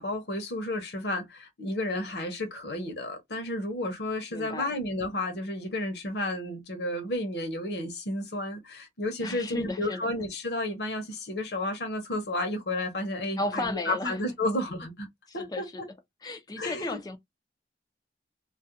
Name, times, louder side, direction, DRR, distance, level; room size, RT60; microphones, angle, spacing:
voice 1, 0.0-15.1 15.3-15.9 16.6-17.0, left 1 dB, 70° left, 0.8 m, -32 dB
voice 2, 4.3-4.7 9.2-10.0 13.4-14.2 15.3-15.8 16.2-17.2, left 2 dB, 20° left, 0.3 m, -34 dB
2.3 x 2.1 x 2.7 m
head